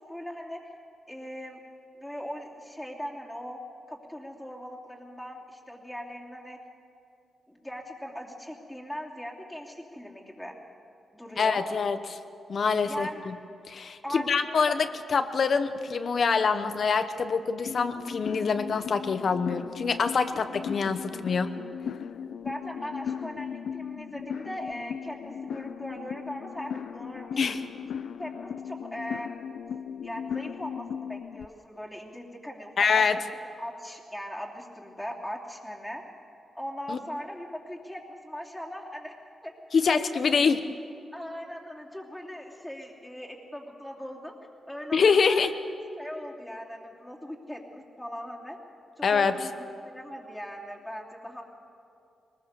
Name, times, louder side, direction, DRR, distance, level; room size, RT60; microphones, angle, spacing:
voice 1, 0.1-0.6 1.1-1.6 1.9-3.6 3.9-6.6 7.5-10.6 11.1-11.7 12.8-13.2 14.0-14.8 22.4-27.4 28.2-29.3 30.0-32.9 33.6-36.0 36.5-39.1 39.4-39.5 39.9-40.3 41.1-44.3 44.7-45.4 46.0-48.6 49.0-51.4, equal, 5° left, -2 dB, 2.8 m, -39 dB
voice 2, 11.4-12.2 12.5-13.4 13.7-21.5 27.4-27.6 32.8-33.2 36.9-37.0 39.7-40.6 44.9-45.5 49.0-49.5, left 5 dB, 50° left, 9 dB, 0.9 m, -25 dB
sound 1, 17.7-31.5, left 7 dB, 80° left, 0.5 m, -37 dB
22.0 x 20.5 x 6.8 m, 2.5 s
wide cardioid pair, 130°, 0 cm